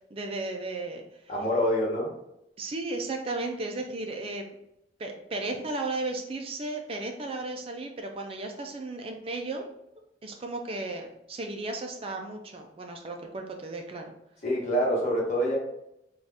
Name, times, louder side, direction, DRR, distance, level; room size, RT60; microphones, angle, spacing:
voice 1, 0.1-1.0 2.6-4.4 5.0-9.6 10.2-14.0, right 2 dB, 35° right, 3 dB, 0.4 m, -34 dB
voice 2, 1.3-2.1 14.4-15.6, equal, 40° left, -3 dB, 1.1 m, -26 dB
4.0 x 2.4 x 3.4 m, 0.82 s
head